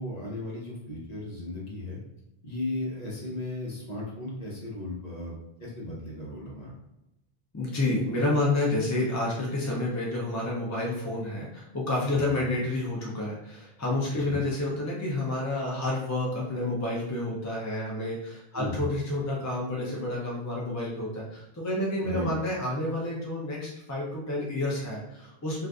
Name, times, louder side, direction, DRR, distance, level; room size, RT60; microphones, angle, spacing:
voice 1, 0.0-2.0 2.4-5.3 5.6-6.7 12.1-12.5 14.0-14.5 18.5-18.9 22.0-22.3, left 1 dB, 40° left, -5 dB, 0.9 m, -35 dB
voice 2, 7.5-25.7, left 2 dB, 25° left, -4 dB, 0.4 m, -29 dB
2.5 x 2.5 x 3.4 m, 0.90 s
omnidirectional pair, 1.1 m